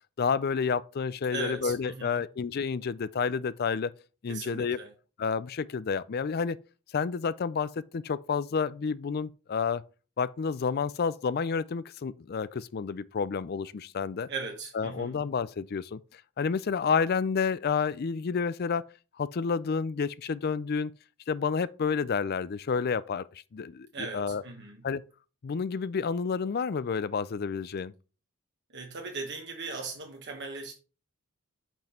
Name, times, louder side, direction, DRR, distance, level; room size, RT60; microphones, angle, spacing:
voice 1, 0.2-3.9 4.2-4.8 5.2-6.6 6.9-9.8 10.2-14.3 14.7-18.8 19.2-20.9 21.3-24.4 24.8-25.0 25.4-27.9, left 5 dB, 45° left, 0.4 m, -30 dB
voice 2, 1.3-2.2 4.3-4.9 14.3-15.2 23.9-24.8 28.7-30.7, right 4 dB, 55° right, 1.1 m, -38 dB
6.0 x 5.3 x 4.3 m
head